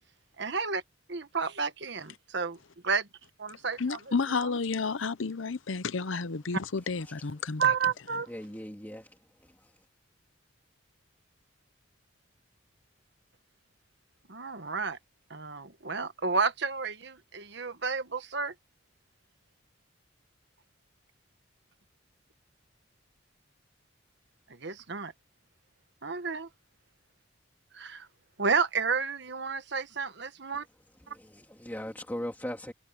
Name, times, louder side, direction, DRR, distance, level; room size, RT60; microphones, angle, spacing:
voice 1, 0.4-0.8 1.1-2.6 2.8-3.1 3.4-4.1 4.4-4.5 7.6-8.3 14.3-15.0 15.3-18.5 24.5-25.1 26.0-26.5 27.7-28.1 28.4-30.6, right 5 dB, 60° right, 1.4 m, -31 dB
voice 2, 3.8-7.7, left 4 dB, 75° left, 0.8 m, -31 dB
voice 3, 8.3-9.8 31.1-32.7, equal, 10° left, 2.6 m, -40 dB
head